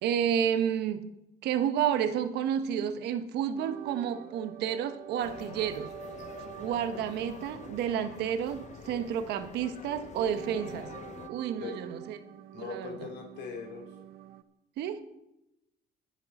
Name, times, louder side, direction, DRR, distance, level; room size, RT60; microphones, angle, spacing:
voice 1, 0.0-1.2 1.4-5.9 6.6-10.9 11.3-12.2 12.6-13.0 14.8-15.0, right 9 dB, 80° right, 1.1 m, -30 dB
sound 1, 3.6-14.4, right 9 dB, 60° right, 0.9 m, -47 dB
sound 2, 5.2-11.3, left 7 dB, 45° left, 0.8 m, -47 dB
voice 2, 12.5-13.9, left 4 dB, 80° left, 3.3 m, -40 dB
21.5 x 7.6 x 4.2 m
cardioid pair, 110°, 17 cm